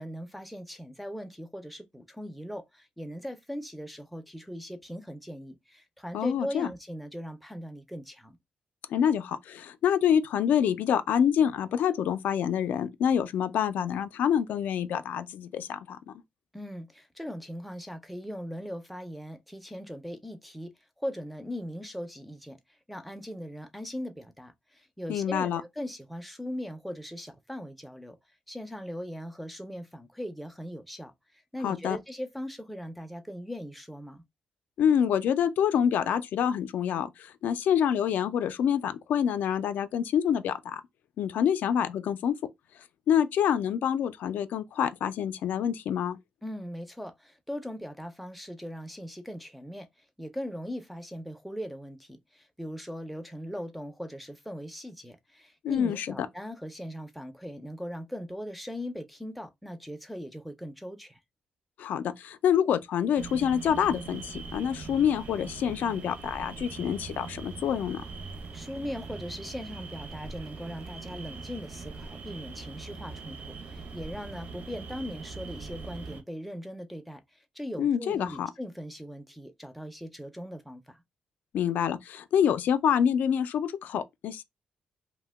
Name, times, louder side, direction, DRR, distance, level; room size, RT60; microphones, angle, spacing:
voice 1, 0.0-8.4 16.5-20.7 21.0-22.6 22.9-28.2 28.5-34.2 46.4-49.9 50.2-61.2 68.5-81.0, equal, ahead, 0.3 m, -39 dB
voice 2, 6.1-6.7 8.9-16.1 25.1-25.6 31.6-32.0 34.8-40.8 41.2-42.4 43.1-46.2 55.6-56.2 61.8-68.0 77.8-78.5 81.5-84.4, left 8 dB, 85° left, 0.3 m, -27 dB
sound 1, 63.2-76.2, right 4 dB, 55° right, 0.6 m, -42 dB
2.8 x 2.1 x 3.3 m
wide cardioid pair, 180°, 3 cm